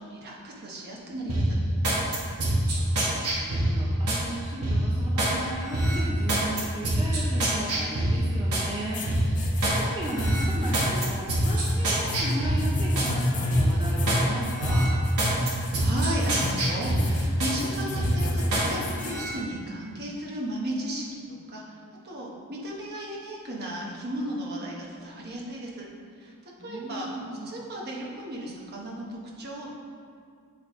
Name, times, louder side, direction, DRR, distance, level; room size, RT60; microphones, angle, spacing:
voice 1, 0.0-1.6 15.4-21.8 22.0-25.9 26.2-26.3 26.6-27.1 27.4-29.7, right 1 dB, 45° right, -3 dB, 1.0 m, -35 dB
sound 1, 1.3-4.2 4.6-5.4 5.7-8.7 9.1-9.8 10.1-13.1 13.5-14.2 14.6-17.6 17.9-18.7 19.0-19.3, right 1 dB, 80° right, 1.2 m, -25 dB
voice 2, 2.7-9.4 9.7-14.9 26.6-27.6, right 1 dB, 25° right, -5 dB, 0.6 m, -36 dB
sound 2, 8.9-19.2, left 1 dB, 35° left, 0.7 m, -31 dB
8.4 x 3.4 x 3.7 m, 2.3 s
head